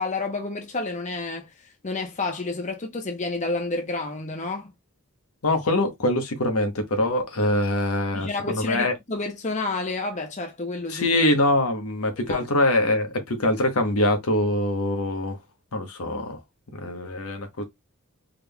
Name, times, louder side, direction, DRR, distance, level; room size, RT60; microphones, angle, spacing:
voice 1, 0.0-1.5 1.8-4.7 8.1-11.2 12.3-12.4, left 3 dB, 35° left, 0.8 m, -30 dB
voice 2, 5.4-8.9 10.9-15.4 15.7-16.4 16.8-17.6, left 1 dB, 80° left, 1.0 m, -23 dB
3.6 x 3.5 x 2.2 m
head